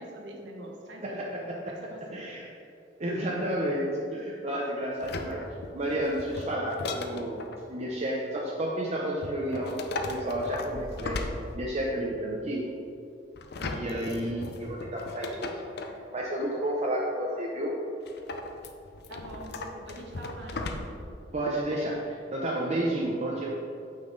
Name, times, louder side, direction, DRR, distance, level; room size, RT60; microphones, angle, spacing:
voice 1, 0.0-1.2 1.7-2.2 3.0-3.3 6.8-7.0 19.1-20.7, right 1 dB, 75° right, 0 dB, 1.2 m, -44 dB
voice 2, 1.0-2.5 3.0-5.4 5.7-7.4 7.7-9.8 10.1-11.2 11.5-12.7 13.6-15.6 15.9-17.8 21.3-23.5, right 1 dB, 40° right, -2 dB, 0.7 m, -31 dB
sound 1, 5.0-7.6 9.2-12.0 13.4-16.0 18.1-21.1 21.5-21.6, left 2 dB, 60° left, 0.6 m, -37 dB
8.8 x 5.8 x 3.9 m, 2.6 s
head